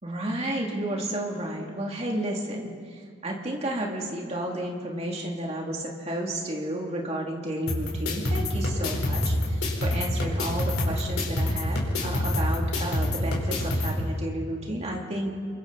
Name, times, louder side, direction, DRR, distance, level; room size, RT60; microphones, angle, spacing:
voice 1, 0.0-15.3, right 1 dB, 30° right, -1 dB, 2.8 m, -32 dB
sound 1, 7.7-13.9, left 1 dB, 85° left, 4.7 m, -27 dB
28.0 x 23.5 x 4.2 m, 2.1 s
head